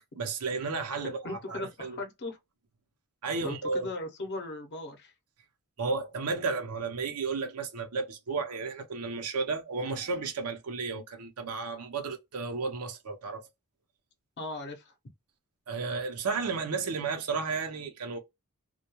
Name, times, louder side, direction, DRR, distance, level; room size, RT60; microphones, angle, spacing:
voice 1, 0.0-2.0 3.2-3.9 5.8-13.5 15.7-18.2, right 4 dB, 90° right, 0.7 m, -33 dB
voice 2, 1.2-2.4 3.4-5.1 14.4-14.9, left 2 dB, 50° left, 0.6 m, -38 dB
2.2 x 2.2 x 2.9 m
head